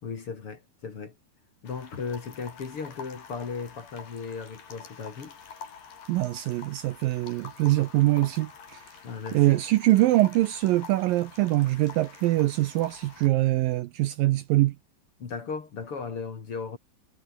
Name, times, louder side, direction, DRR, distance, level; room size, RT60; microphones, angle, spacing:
voice 1, 0.0-1.1 1.6-5.4 9.0-9.6 15.2-16.8, left 5 dB, 40° left, 2.8 m, -36 dB
sound 1, 1.6-13.3, left 6 dB, 60° left, 5.5 m, -47 dB
voice 2, 6.1-8.8 9.3-14.8, right 17 dB, 80° right, 2.2 m, -23 dB
omnidirectional pair, 4.7 m